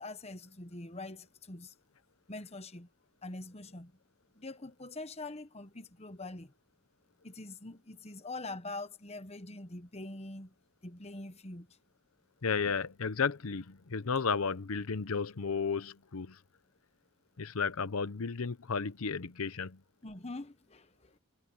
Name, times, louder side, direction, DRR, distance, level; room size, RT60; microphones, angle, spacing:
voice 1, 0.0-1.7 2.3-2.9 3.2-3.9 4.3-6.5 7.2-10.5 10.8-11.8 20.0-21.2, left 2 dB, 30° left, 1.1 m, -44 dB
voice 2, 12.4-16.4 17.4-19.8, left 5 dB, 80° left, 0.8 m, -33 dB
head